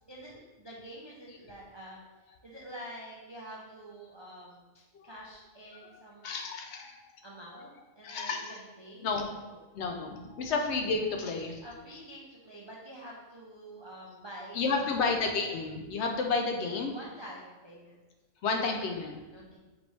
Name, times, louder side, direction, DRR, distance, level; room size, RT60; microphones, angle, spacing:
voice 1, 0.1-2.0 2.4-4.6 5.0-6.3 7.2-9.6 11.6-15.0 16.8-18.0 19.3-19.6, right 1 dB, 45° right, -5 dB, 0.3 m, -47 dB
voice 2, 6.2-7.0 7.4-7.7 8.0-8.6 9.0-9.3 9.7-11.6 11.9-12.0 14.5-16.9 18.4-19.2, left 4 dB, 65° left, 3 dB, 0.8 m, -31 dB
5.0 x 3.1 x 3.2 m, 1.2 s
omnidirectional pair, 1.3 m